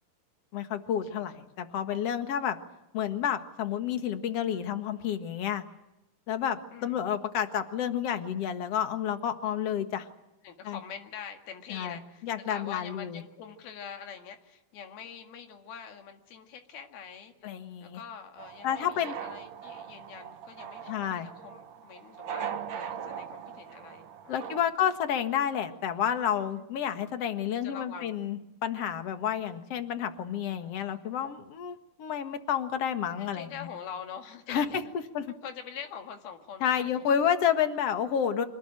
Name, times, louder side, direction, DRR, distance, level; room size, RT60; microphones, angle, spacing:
voice 1, 0.5-2.6 2.9-5.6 6.3-10.1 10.6-10.8 11.7-13.2 17.4-18.0 18.6-19.1 20.9-21.3 24.3-33.5 34.5-35.3 36.6-38.4, left 9 dB, 50° left, 8 dB, 2.2 m, -30 dB
voice 2, 6.7-7.1 10.4-17.5 17.8-24.5 26.6-26.8 27.5-28.2 30.4-30.8 33.2-34.8 35.3-37.2, left 7 dB, 80° left, 5 dB, 3.8 m, -45 dB
sound 1, 18.4-24.6, right 8 dB, 65° right, 2.8 m, -40 dB
26.0 x 19.0 x 9.0 m, 0.91 s
omnidirectional pair, 4.3 m